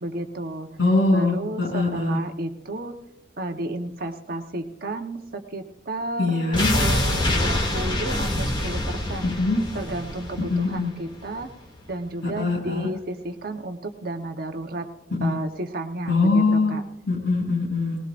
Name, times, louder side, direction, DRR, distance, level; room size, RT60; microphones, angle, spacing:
voice 1, 0.0-0.7 1.1-2.9 3.4-9.3 9.7-11.5 11.9-14.9 15.2-16.8, right 1 dB, 55° right, 5 dB, 1.1 m, -32 dB
voice 2, 0.8-2.2 6.2-6.7 9.2-9.6 10.4-10.9 12.2-12.9 15.2-15.3 16.1-16.8 17.1-18.0, left 3 dB, 80° left, -3 dB, 7.2 m, -22 dB
sound 1, 6.5-11.5 11.8-11.9, left 1 dB, 25° left, 2.5 m, -26 dB
19.5 x 19.5 x 2.6 m, 0.83 s
head